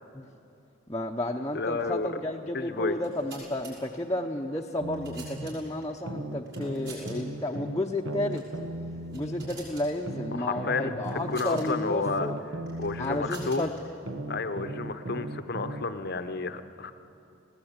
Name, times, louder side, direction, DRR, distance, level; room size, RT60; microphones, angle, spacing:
voice 1, 0.9-8.4 9.1-12.4 13.0-13.7, left 1 dB, 15° left, -1 dB, 0.8 m, -32 dB
voice 2, 1.5-2.2 2.5-3.0 10.3-11.0 11.3-12.3 12.8-13.7 14.3-16.9, left 4 dB, 50° left, 10 dB, 0.8 m, -31 dB
sound 1, 2.9-3.7 4.6-5.8 6.5-7.1 7.4-7.6 8.3-8.5 8.9-9.9 11.0-11.7 12.7-13.8, right 4 dB, 60° right, 7.4 m, -48 dB
sound 2, 4.8-5.5 6.1-9.5 10.1-13.5 14.1-16.1, right 1 dB, 80° right, 1.2 m, -37 dB
20.0 x 18.0 x 8.9 m, 2.7 s
head